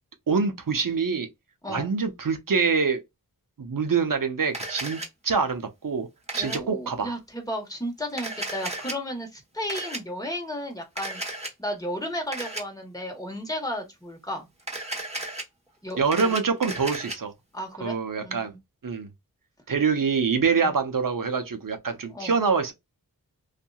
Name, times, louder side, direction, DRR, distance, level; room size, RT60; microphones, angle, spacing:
voice 1, 0.3-1.3 1.7-3.0 3.6-6.1 6.3-7.1 16.0-17.3 17.8-18.5 18.8-19.1 19.7-22.7, right 5 dB, 60° right, 0.7 m, -25 dB
Camera, 4.5-5.1 6.3-6.6 8.1-8.9 9.7-10.0 11.0-11.5 12.3-12.6 14.6-15.4 15.9-17.2, right 1 dB, 15° right, 1.2 m, -34 dB
voice 2, 6.3-11.2 11.6-14.5 15.8-16.4 16.6-16.8 17.5-18.6 20.6-20.7 22.1-22.4, equal, 10° left, 1.3 m, -34 dB
2.8 x 2.5 x 2.3 m
wide cardioid pair, 50°, 37 cm